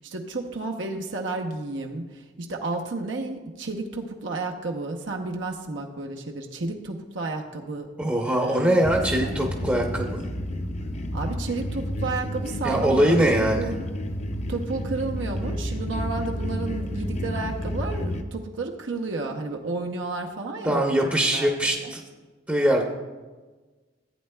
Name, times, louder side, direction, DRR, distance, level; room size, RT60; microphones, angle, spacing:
voice 1, 0.0-7.9 8.2-9.3 11.1-13.7 14.5-21.9, right 3 dB, 80° right, 2 dB, 0.8 m, -32 dB
voice 2, 8.0-10.2 12.6-13.7 20.6-22.0 22.5-22.8, right 1 dB, 10° right, 0 dB, 0.7 m, -22 dB
sound 1, 8.8-18.2, equal, 35° left, 0.6 m, -30 dB
15.0 x 8.8 x 2.2 m, 1.3 s
head